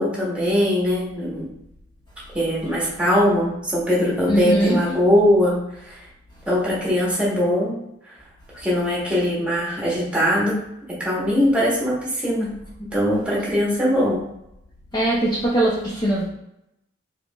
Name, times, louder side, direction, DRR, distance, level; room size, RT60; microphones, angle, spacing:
voice 1, 0.0-1.5 2.3-6.0 6.5-7.8 8.5-10.6 10.9-12.5 12.8-14.2, equal, 5° right, -7 dB, 1.2 m, -21 dB
voice 2, 4.3-4.8 14.9-16.2, right 1 dB, 20° left, -6 dB, 0.6 m, -21 dB
4.7 x 3.0 x 2.3 m, 0.82 s
head